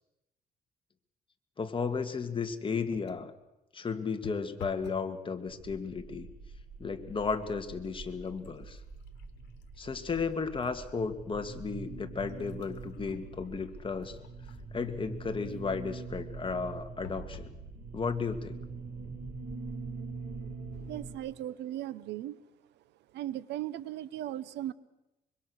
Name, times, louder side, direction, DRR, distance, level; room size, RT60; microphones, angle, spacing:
voice 1, 1.6-3.3 3.7-6.3 6.8-8.8 9.8-14.2 14.7-17.5 17.9-18.6, left 5 dB, 30° left, 7 dB, 2.0 m, -34 dB
sound 1, 2.9-3.3 4.2-5.1 5.5-6.0 6.7-6.9 7.3-10.8 11.3-11.4 12.1-14.8 17.0-17.6 18.2-18.3 18.6-18.7, left 6 dB, 90° left, 1.5 m, -51 dB
sound 2, 5.5-21.2, right 4 dB, 65° right, 5.6 m, -44 dB
voice 2, 20.9-22.4 23.1-24.7, right 13 dB, 90° right, 18 dB, 1.0 m, -37 dB
25.0 x 23.5 x 6.5 m, 0.94 s
cardioid pair, 110°, 17 cm